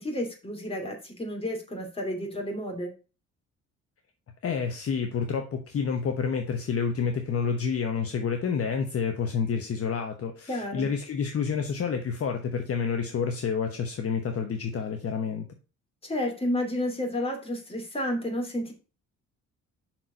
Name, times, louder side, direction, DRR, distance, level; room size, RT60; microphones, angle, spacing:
voice 1, 0.0-2.9 10.5-10.9 16.0-18.7, left 1 dB, 20° left, 1 dB, 2.7 m, -31 dB
voice 2, 4.4-15.5, left 6 dB, 50° left, 5 dB, 1.1 m, -29 dB
5.9 x 4.5 x 5.1 m, 0.33 s
cardioid pair, 90°, 30 cm